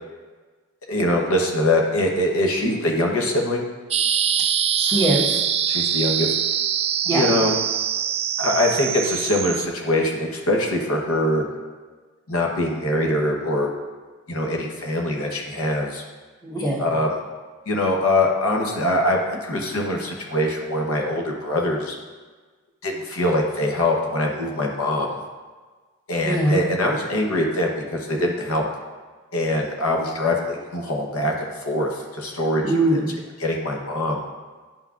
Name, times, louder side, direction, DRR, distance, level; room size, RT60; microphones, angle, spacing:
voice 1, 0.9-3.6 5.7-6.3 7.1-7.5 8.4-11.4 12.3-13.7 14.3-16.0 16.8-17.2 17.7-22.0 22.8-25.1 26.1-28.7 29.3-32.6 32.9-33.0 33.4-34.2, left 1 dB, 90° left, 0 dB, 1.0 m, -23 dB
sound 1, 3.9-9.7, right 8 dB, 30° right, 0.3 m, -23 dB
voice 2, 4.8-5.4 7.0-7.3 16.4-16.9 26.2-26.6 32.6-33.1, right 1 dB, 20° left, -4 dB, 1.3 m, -22 dB
10.5 x 5.8 x 2.5 m, 1.4 s
head